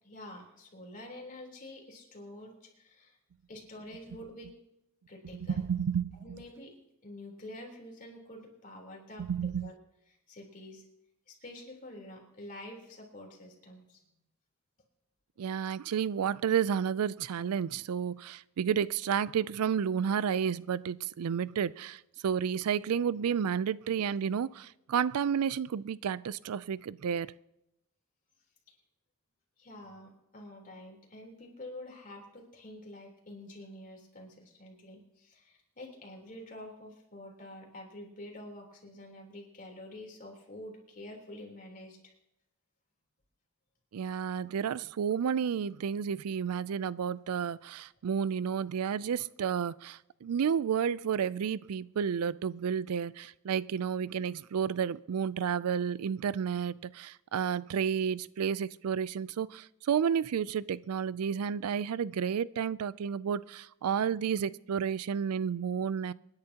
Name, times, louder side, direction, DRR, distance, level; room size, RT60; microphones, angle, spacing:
voice 1, 0.0-3.2 3.5-4.5 5.1-5.6 6.1-6.7 7.0-9.3 9.6-9.8 10.3-10.8 11.3-14.0 28.7-28.8 29.6-42.1, left 1 dB, 40° left, 3.6 m, -48 dB
voice 2, 5.5-6.2 9.3-9.7 15.4-27.3 43.9-66.1, right 7 dB, 85° right, 0.4 m, -31 dB
27.5 x 10.5 x 2.9 m
head